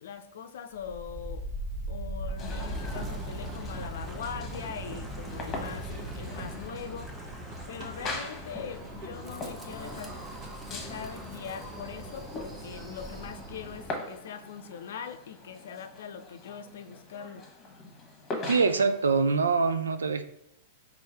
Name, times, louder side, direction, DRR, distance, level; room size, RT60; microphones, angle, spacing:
voice 1, 0.0-1.5 1.9-7.1 7.7-10.2 10.7-17.5, left 7 dB, 65° left, 8 dB, 0.5 m, -41 dB
Wind, 0.7-13.8, right 1 dB, 15° right, 0.9 m, -40 dB
sound 1, 2.4-19.2, left 2 dB, 25° left, 1.2 m, -43 dB
sound 2, 5.3-13.9, right 1 dB, 40° right, 1.2 m, -45 dB
voice 2, 18.5-20.2, right 4 dB, 85° right, 9 dB, 0.5 m, -24 dB
4.7 x 2.7 x 4.2 m, 0.74 s
hypercardioid pair, 105°, 0 cm